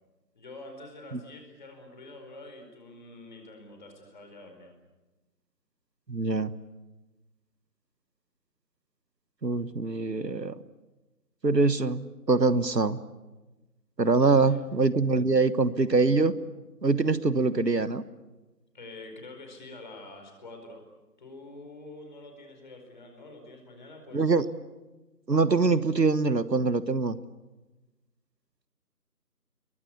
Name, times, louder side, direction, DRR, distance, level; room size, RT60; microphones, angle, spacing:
voice 1, 0.3-4.7 14.1-14.6 18.7-20.8 21.2-24.4, left 2 dB, 30° left, 4 dB, 4.8 m, -46 dB
voice 2, 6.1-6.5 9.4-10.5 11.4-13.0 14.0-16.4 16.8-18.0 24.1-24.5 25.3-27.2, right 3 dB, 80° right, 15 dB, 1.4 m, -24 dB
27.5 x 23.0 x 8.4 m, 1.1 s
figure-of-eight pair, 160°, 49 cm